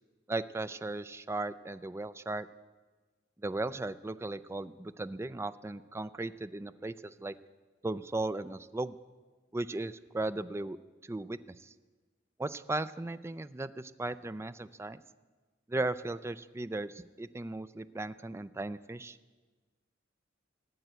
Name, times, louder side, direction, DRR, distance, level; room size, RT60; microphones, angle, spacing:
voice 1, 0.3-2.5 3.4-7.3 7.8-8.9 9.5-10.8 11.1-11.7 12.4-15.0 15.7-19.2, right 2 dB, 15° right, 13 dB, 0.4 m, -36 dB
15.0 x 8.9 x 8.1 m, 1.3 s
head